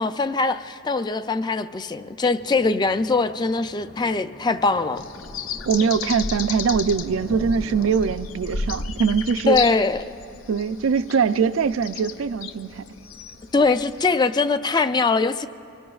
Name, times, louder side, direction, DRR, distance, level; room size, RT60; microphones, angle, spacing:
voice 1, 0.0-5.0 9.5-10.0 13.5-15.5, left 3 dB, 20° left, 0.3 m, -22 dB
sound 1, 2.4-8.1, equal, 70° left, 1.5 m, -43 dB
sound 2, 5.0-14.1, left 5 dB, 90° left, 0.6 m, -33 dB
voice 2, 5.7-9.6 10.5-12.9, right 6 dB, 85° right, 0.4 m, -22 dB
24.5 x 21.5 x 2.4 m
head